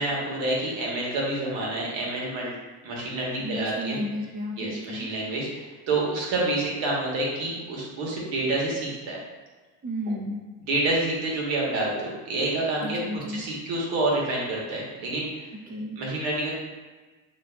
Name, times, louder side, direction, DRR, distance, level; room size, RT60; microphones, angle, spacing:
voice 1, 0.0-2.5 2.8-4.0 4.6-9.2 10.7-13.0 13.3-15.3 16.0-16.5, right 2 dB, 75° right, -3 dB, 1.3 m, -28 dB
voice 2, 3.4-5.1 9.8-10.5 12.8-13.5 15.7-16.0, equal, 20° right, 0 dB, 0.5 m, -33 dB
6.1 x 2.5 x 2.3 m, 1.3 s
supercardioid pair, 85°, 46 cm